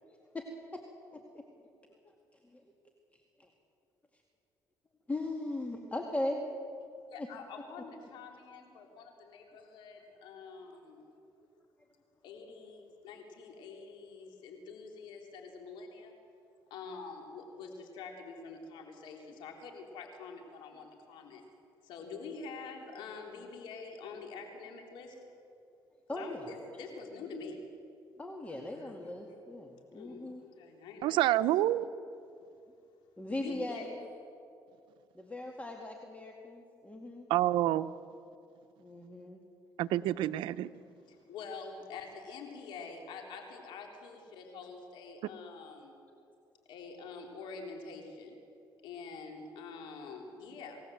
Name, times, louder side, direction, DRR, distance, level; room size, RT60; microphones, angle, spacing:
voice 1, 0.0-0.5 0.7-0.8 1.1-1.4 2.0-2.1 2.4-2.6 3.4-3.5 5.1-6.4 7.2-7.3 11.0-11.1 26.1-26.5 28.2-30.4 33.2-34.0 35.1-37.3 38.8-39.4, left 1 dB, 15° left, 2.3 m, -39 dB
voice 2, 7.1-11.1 12.2-16.1 16.7-21.4 21.8-25.2 26.1-27.6 28.4-29.1 29.7-31.6 33.3-33.8 41.1-45.9 46.7-48.4 48.8-50.8, left 4 dB, 80° left, 3.6 m, -46 dB
voice 3, 31.0-31.9 37.3-37.9 39.8-40.7, right 14 dB, 85° right, 0.7 m, -28 dB
27.5 x 18.0 x 7.8 m
cardioid pair, 90°, 8 cm